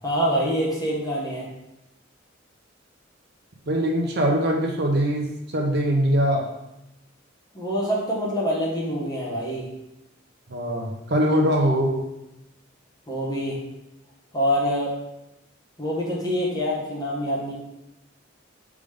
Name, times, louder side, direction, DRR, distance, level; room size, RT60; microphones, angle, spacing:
voice 1, 0.0-1.5 7.5-9.7 13.1-13.6 14.3-15.0 15.8-17.5, equal, 20° left, -5 dB, 1.4 m, -25 dB
voice 2, 3.7-5.3 5.5-6.5 10.5-12.0, equal, 55° right, 1 dB, 0.8 m, -22 dB
5.1 x 3.7 x 5.1 m, 0.90 s
head